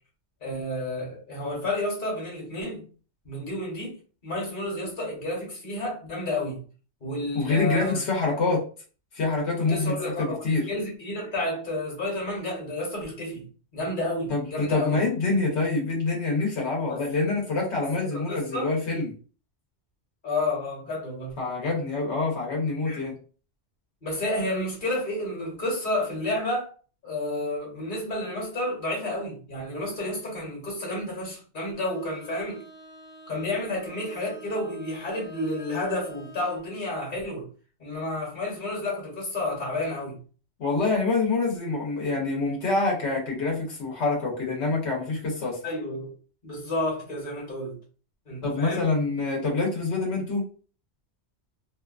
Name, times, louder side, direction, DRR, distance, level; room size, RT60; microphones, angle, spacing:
voice 1, 0.4-2.9 3.2-4.0 4.2-6.6 7.0-8.0 9.6-13.4 13.7-15.0 16.9-17.0 17.8-18.7 20.2-21.3 22.8-23.1 24.0-26.7 27.0-32.6 33.3-37.5 37.8-40.2 45.6-46.1 46.4-47.8 48.3-48.8, left 1 dB, 50° left, 1.2 m, -31 dB
voice 2, 7.3-8.6 9.1-10.7 14.3-19.1 21.4-23.1 40.6-45.6 48.4-50.5, left 3 dB, 75° left, 1.1 m, -26 dB
Bowed string instrument, 31.8-36.7, right 3 dB, 60° right, 0.8 m, -47 dB
2.6 x 2.2 x 2.4 m
omnidirectional pair, 1.1 m